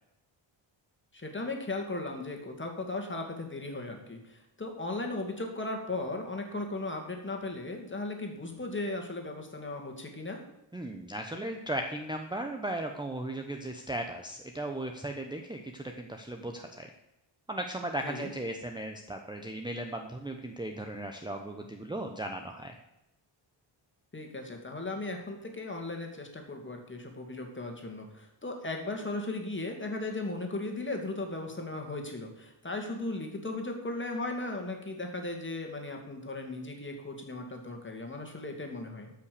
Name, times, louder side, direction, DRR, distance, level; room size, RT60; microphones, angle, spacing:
voice 1, 1.1-10.4 18.0-18.3 24.1-39.1, left 2 dB, 25° left, 3 dB, 2.3 m, -37 dB
voice 2, 10.7-16.9 17.5-22.7, right 1 dB, 10° right, 4 dB, 0.8 m, -36 dB
13.0 x 5.8 x 6.8 m, 0.91 s
wide cardioid pair, 120°, 49 cm